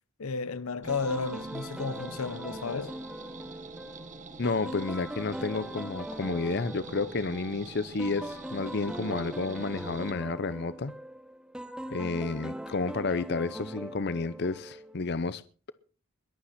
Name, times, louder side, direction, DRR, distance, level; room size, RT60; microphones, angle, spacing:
voice 1, 0.2-3.0, left 4 dB, 75° left, 0.9 m, -33 dB
sound 1, 0.8-10.1, right 3 dB, 35° right, 1.6 m, -46 dB
sound 2, 0.9-15.1, equal, 5° right, 0.9 m, -41 dB
voice 2, 4.4-10.9 11.9-15.4, left 3 dB, 50° left, 0.6 m, -31 dB
21.5 x 8.8 x 5.8 m
head